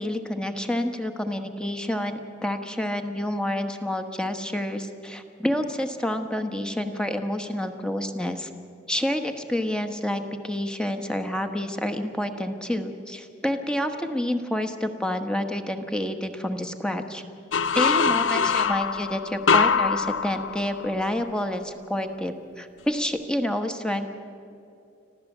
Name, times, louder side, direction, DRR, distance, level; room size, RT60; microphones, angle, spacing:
voice 1, 0.0-8.5 8.9-17.2 17.7-24.1, left 1 dB, 5° left, 7 dB, 1.2 m, -28 dB
sound 1, 17.5-21.1, left 5 dB, 80° left, 0.6 m, -23 dB
26.0 x 15.5 x 7.3 m, 2.6 s
head